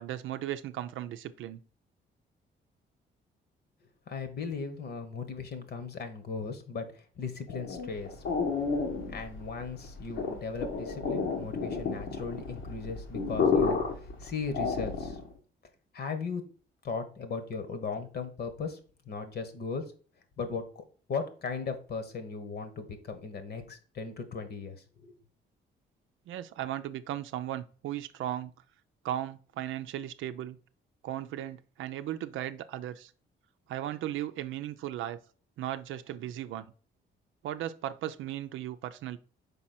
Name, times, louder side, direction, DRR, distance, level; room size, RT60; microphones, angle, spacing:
voice 1, 0.0-1.6 26.3-28.5 29.0-30.6 31.0-33.1 33.7-35.2 35.6-36.7 37.4-39.2, right 12 dB, 80° right, 0.5 m, -36 dB
voice 2, 4.1-8.1 9.1-13.8 14.2-15.2 15.9-16.4 16.8-18.8 19.1-19.8 20.4-20.8 21.1-25.2, left 5 dB, 55° left, 1.3 m, -37 dB
sound 1, 7.5-15.3, left 5 dB, 75° left, 1.4 m, -31 dB
5.4 x 4.3 x 4.3 m
cardioid pair, 90°, 20 cm